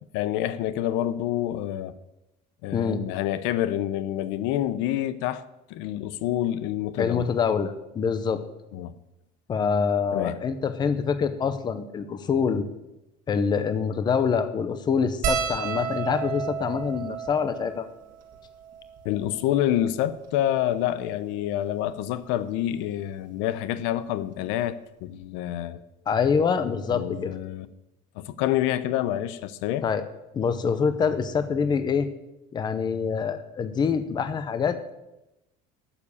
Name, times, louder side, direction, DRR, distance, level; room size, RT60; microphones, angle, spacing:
voice 1, 0.1-1.9 2.6-5.4 5.7-7.3 8.7-8.9 10.1-10.4 19.0-25.8 26.9-27.7 28.2-29.8, left 12 dB, 75° left, 0.7 m, -27 dB
voice 2, 7.0-8.4 9.5-12.7 13.3-17.9 26.1-27.3 29.8-30.0 30.3-32.1 32.5-34.8, left 6 dB, 20° left, 0.8 m, -25 dB
sound 1, 15.2-19.8 20.6-20.7 20.9-21.1 22.3-22.6 24.0-24.1 24.3-24.5, right 8 dB, 45° right, 1.7 m, -33 dB
12.0 x 7.2 x 8.4 m
cardioid pair, 170°, 20 cm